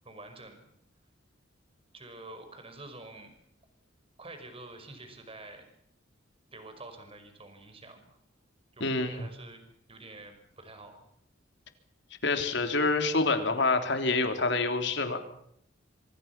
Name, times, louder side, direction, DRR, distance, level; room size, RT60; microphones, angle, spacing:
voice 1, 0.0-0.6 1.9-3.3 4.2-5.7 6.5-8.2 8.8-11.0, right 2 dB, 30° right, 7 dB, 5.6 m, -48 dB
voice 2, 8.8-9.3 12.2-15.2, left 3 dB, 60° left, 7 dB, 3.4 m, -27 dB
26.0 x 26.0 x 6.0 m, 0.71 s
head